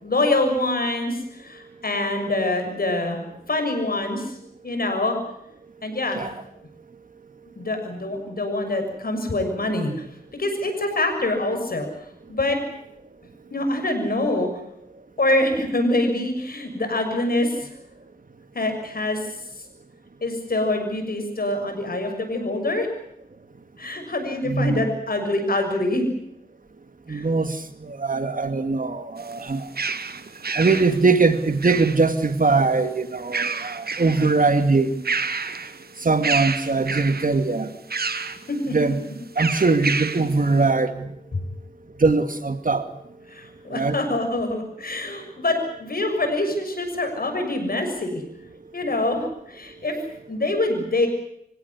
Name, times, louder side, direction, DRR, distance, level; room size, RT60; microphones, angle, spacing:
voice 1, 0.0-3.2 3.5-4.3 4.6-5.2 5.8-6.2 7.6-10.0 10.3-11.9 12.3-12.6 13.5-14.5 15.2-17.7 18.5-19.2 20.2-22.9 23.8-26.0 27.1-27.3 38.7-38.9 41.3-41.4 43.3-48.2 48.7-50.0 50.3-51.1, left 2 dB, 75° left, 5 dB, 6.7 m, -25 dB
voice 2, 24.4-24.9 27.1-27.6 27.8-29.7 30.6-34.9 36.0-37.7 38.7-39.0 39.4-41.1 42.0-42.8 43.7-44.0, right 3 dB, 60° right, 9 dB, 2.3 m, -21 dB
sound 1, 29.2-32.3 33.2-34.4 34.8-35.8 36.2-37.4 37.9-38.4 39.4-40.3, right 4 dB, 85° right, 1.6 m, -29 dB
26.0 x 16.5 x 9.9 m, 0.76 s
wide cardioid pair, 55°, 16 cm